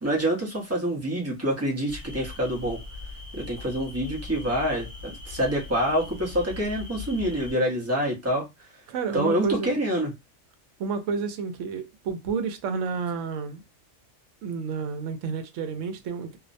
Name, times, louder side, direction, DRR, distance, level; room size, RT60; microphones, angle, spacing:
voice 1, 0.0-2.8 3.3-8.4 9.1-10.1, equal, 15° right, 0.6 m, -26 dB
sound 1, 1.9-7.5, left 3 dB, 45° right, 1.2 m, -40 dB
voice 2, 8.9-9.8 10.8-13.6 14.4-16.4, right 5 dB, 75° right, 0.9 m, -30 dB
2.5 x 2.0 x 2.5 m
omnidirectional pair, 1.3 m